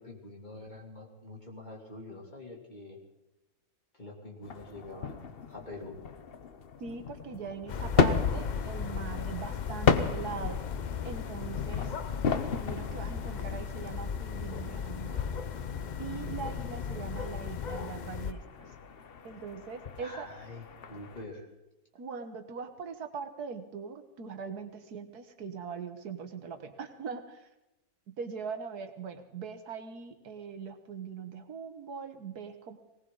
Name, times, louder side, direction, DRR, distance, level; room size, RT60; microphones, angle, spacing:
voice 1, 0.0-3.0 3.9-6.0 20.0-21.5, left 2 dB, 30° left, -1 dB, 3.2 m, -45 dB
sound 1, 4.4-21.2, left 6 dB, 45° left, 0.9 m, -35 dB
voice 2, 6.8-10.6 11.0-11.9 12.3-15.2 16.0-18.7 19.2-20.3 21.9-27.5 28.1-32.8, right 6 dB, 80° right, 8 dB, 1.8 m, -41 dB
sound 2, 7.7-18.3, left 7 dB, 90° left, 0.4 m, -36 dB
19.5 x 19.0 x 4.0 m, 0.95 s
omnidirectional pair, 1.6 m